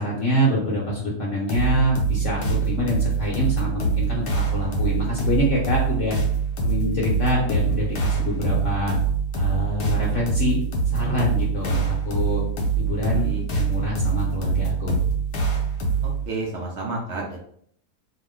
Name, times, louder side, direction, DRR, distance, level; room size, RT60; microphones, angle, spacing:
voice 1, 0.0-6.2 6.6-8.9 9.3-10.6 10.9-12.4 12.7-15.0, equal, 60° left, -4 dB, 0.9 m, -25 dB
sound 1, 1.5-16.3, right 5 dB, 80° left, 1.2 m, -24 dB
voice 2, 13.1-13.4 16.0-17.4, right 3 dB, 75° right, -1 dB, 0.6 m, -31 dB
2.7 x 2.0 x 3.5 m, 0.65 s
omnidirectional pair, 1.7 m